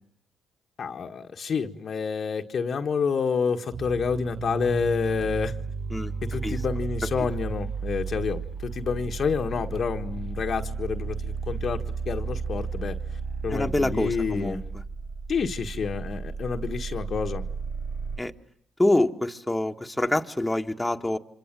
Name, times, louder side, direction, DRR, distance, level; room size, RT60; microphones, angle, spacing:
voice 1, 0.8-5.5 6.2-14.6 15.3-17.4, left 5 dB, 55° left, 4 dB, 1.5 m, -29 dB
sound 1, 3.7-18.2, right 5 dB, 40° right, 1.3 m, -33 dB
voice 2, 13.5-14.6 18.2-18.3 18.8-21.2, left 1 dB, 10° left, 3 dB, 1.7 m, -26 dB
29.0 x 25.5 x 7.6 m, 0.66 s
supercardioid pair, 65°, 0 cm